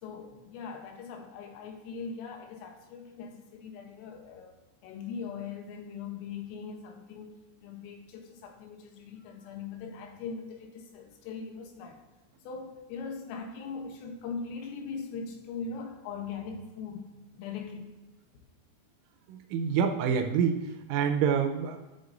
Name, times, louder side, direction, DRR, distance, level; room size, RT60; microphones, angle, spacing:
voice 1, 0.0-4.5 4.8-12.0 12.5-17.9, left 5 dB, 85° left, 3 dB, 3.6 m, -40 dB
voice 2, 19.3-20.6 20.9-21.8, right 7 dB, 80° right, 5 dB, 3.2 m, -26 dB
13.0 x 6.2 x 2.6 m, 1.2 s
omnidirectional pair, 5.8 m